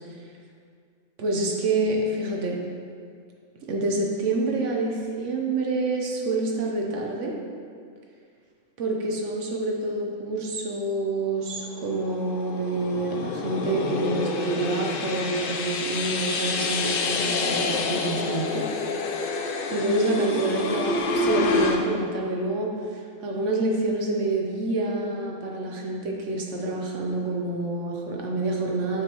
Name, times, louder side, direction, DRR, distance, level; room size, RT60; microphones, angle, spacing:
voice 1, 1.2-2.6 3.7-7.3 8.8-18.7 19.7-29.0, right 2 dB, 70° right, -1 dB, 1.1 m, -27 dB
sound 1, 11.7-21.8, left 4 dB, 60° left, 0.6 m, -28 dB
7.4 x 5.1 x 2.9 m, 2.2 s
omnidirectional pair, 1.3 m